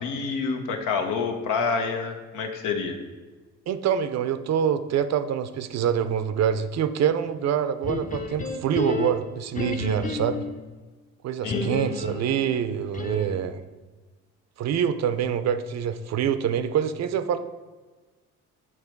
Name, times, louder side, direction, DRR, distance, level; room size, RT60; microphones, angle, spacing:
voice 1, 0.0-3.0 11.4-11.7, left 5 dB, 85° left, 5 dB, 0.9 m, -27 dB
voice 2, 3.7-10.4 11.2-13.6 14.6-17.4, right 8 dB, 60° right, 11 dB, 0.5 m, -25 dB
sound 1, 7.8-10.6 11.5-13.5, left 3 dB, 25° left, 0.6 m, -31 dB
8.2 x 3.1 x 4.5 m, 1.3 s
cardioid pair, 90°, 30 cm